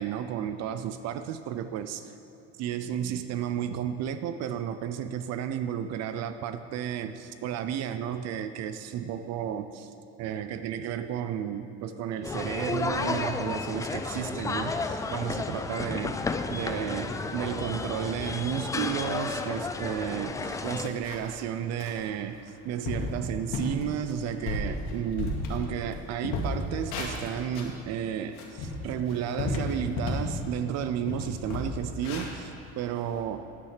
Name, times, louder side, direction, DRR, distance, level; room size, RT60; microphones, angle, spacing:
voice 1, 0.0-2.1 2.6-9.9 10.2-16.2 16.5-33.5, right 9 dB, 55° right, 11 dB, 0.5 m, -32 dB
sound 1, 12.2-20.9, left 3 dB, 10° left, 0.3 m, -32 dB
sound 2, 20.1-20.2 20.6-21.4 21.8-22.0 22.5-22.6 22.8-23.1 23.5-23.8 24.2-25.9 26.2-27.8 28.2-30.3 30.7-30.8 31.1-33.2, left 2 dB, 80° left, 2.0 m, -33 dB
9.5 x 9.5 x 5.0 m, 3.0 s
cardioid pair, 140°, 31 cm